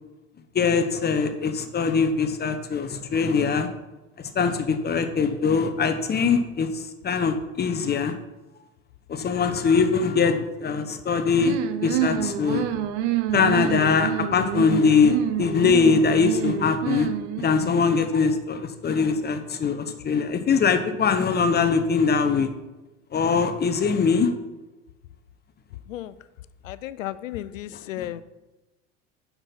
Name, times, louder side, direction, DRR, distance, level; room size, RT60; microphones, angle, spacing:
voice 1, 0.5-3.7 4.2-8.1 9.1-11.6 11.8-12.6 13.3-17.1 17.4-22.5 23.1-24.3 28.0-28.1, left 5 dB, 25° left, 8 dB, 0.8 m, -22 dB
sound 1, 11.4-17.8, right 12 dB, 65° right, 0.7 m, -28 dB
voice 2, 26.6-28.2, left 13 dB, 90° left, 16 dB, 0.5 m, -34 dB
6.8 x 6.0 x 5.7 m, 1.1 s
hypercardioid pair, 90°, 38 cm